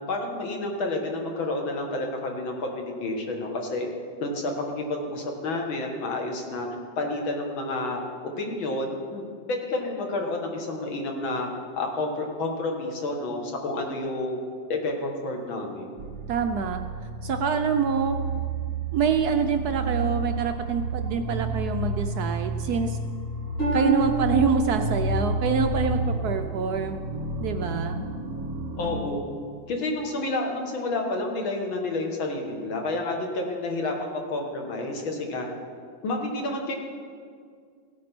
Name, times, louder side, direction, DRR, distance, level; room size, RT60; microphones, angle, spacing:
voice 1, 0.1-3.9 4.2-6.7 7.0-8.0 8.4-11.5 11.8-14.4 14.7-15.9 28.8-29.2 29.7-35.5 36.0-36.8, left 2 dB, 85° left, 2 dB, 2.4 m, -30 dB
sound 1, 16.0-29.0, right 2 dB, 45° right, 1.3 m, -30 dB
voice 2, 16.3-16.8 17.2-18.2 18.9-23.0 23.7-27.0 27.4-28.0, right 6 dB, 70° right, 6 dB, 0.9 m, -26 dB
Harp, 23.6-27.3 27.9-28.3 28.9-29.0, right 2 dB, 40° left, 4.2 m, -31 dB
16.5 x 8.5 x 6.0 m, 2.1 s
omnidirectional pair, 2.1 m